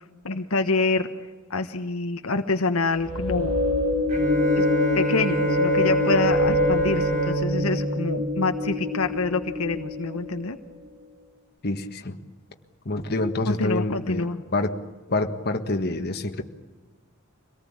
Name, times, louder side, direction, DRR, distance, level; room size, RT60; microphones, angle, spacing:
voice 1, 0.2-1.1 1.5-3.5 4.6-4.7 4.9-10.6 13.5-14.4, left 3 dB, 75° left, 6 dB, 1.3 m, -26 dB
sound 1, 3.0-10.3, left 2 dB, 80° right, 6.7 m, -25 dB
Bowed string instrument, 4.1-9.4, right 3 dB, 35° right, 3.6 m, -29 dB
voice 2, 11.6-12.2 12.8-14.8 15.1-16.4, left 2 dB, 45° left, 5 dB, 1.7 m, -27 dB
25.0 x 18.5 x 8.7 m, 1.3 s
head